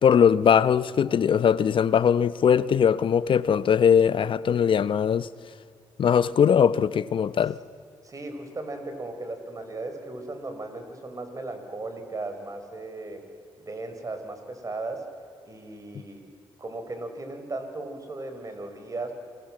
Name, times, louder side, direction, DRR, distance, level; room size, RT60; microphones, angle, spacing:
voice 1, 0.0-5.3 6.0-7.6, left 7 dB, 60° left, 0.7 m, -20 dB
voice 2, 8.0-13.2 13.6-15.1 15.5-16.2 16.6-19.1, right 2 dB, 35° right, 4.8 m, -36 dB
28.5 x 20.5 x 7.7 m
cardioid pair, 75°, 10 cm